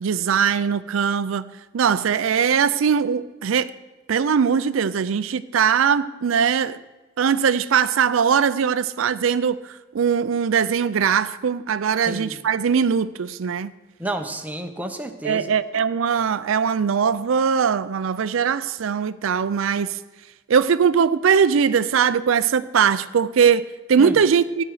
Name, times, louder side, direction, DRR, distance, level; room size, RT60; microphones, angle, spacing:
voice 1, 0.0-3.7 4.1-6.8 7.2-13.7 15.2-20.0 20.5-24.6, right 7 dB, 80° right, 0.4 m, -21 dB
voice 2, 12.1-12.4 14.0-15.5 24.0-24.2, right 1 dB, 10° right, 0.8 m, -31 dB
14.5 x 9.2 x 4.8 m
head